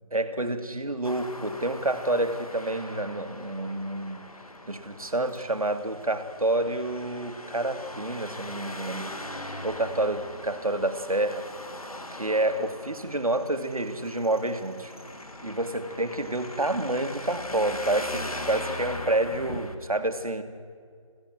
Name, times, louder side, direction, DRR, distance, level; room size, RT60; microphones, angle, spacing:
voice 1, 0.1-4.3 4.7-9.1 9.6-11.5 12.1-14.9 15.4-20.4, right 2 dB, 90° right, 7 dB, 2.2 m, -28 dB
Traffic noise roadway noise, 1.0-19.7, left 1 dB, 90° left, 2.5 m, -40 dB
26.0 x 15.5 x 7.8 m, 2.1 s
figure-of-eight pair, 175°, 18 cm